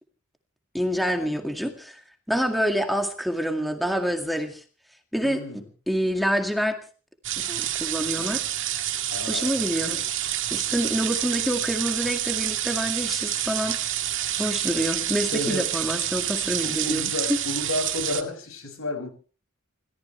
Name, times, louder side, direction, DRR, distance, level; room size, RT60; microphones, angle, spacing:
voice 1, 0.7-2.0 2.3-4.6 5.1-6.8 7.4-8.4 9.3-10.0 10.5-13.9 14.4-17.4, equal, ahead, 5 dB, 2.1 m, -27 dB
voice 2, 5.2-5.6 8.2-8.3 9.1-10.2 15.3-15.7 16.6-19.1, left 2 dB, 75° left, 6 dB, 6.8 m, -32 dB
sound 1, 7.2-18.2, right 12 dB, 60° right, 2.1 m, -28 dB
28.5 x 14.5 x 3.4 m, 0.40 s
head